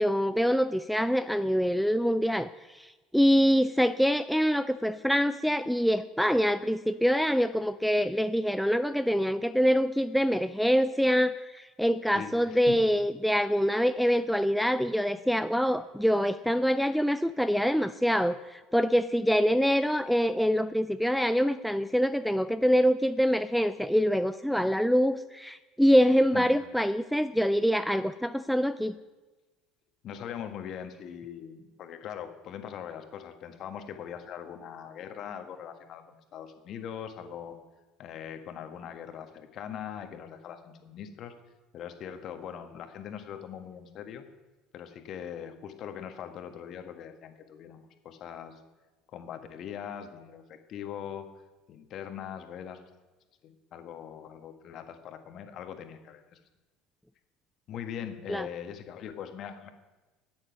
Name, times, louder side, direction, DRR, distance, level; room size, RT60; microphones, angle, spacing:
voice 1, 0.0-29.0 58.3-58.5, equal, ahead, 10 dB, 0.4 m, -25 dB
voice 2, 12.1-12.8 14.0-14.2 26.3-26.5 30.0-37.6 38.0-41.3 41.7-44.3 44.7-48.6 49.1-51.3 51.7-52.8 53.4-56.4 57.7-59.7, left 8 dB, 45° left, 7 dB, 1.5 m, -41 dB
13.5 x 9.7 x 5.9 m, 1.2 s
figure-of-eight pair, 65°, 0 cm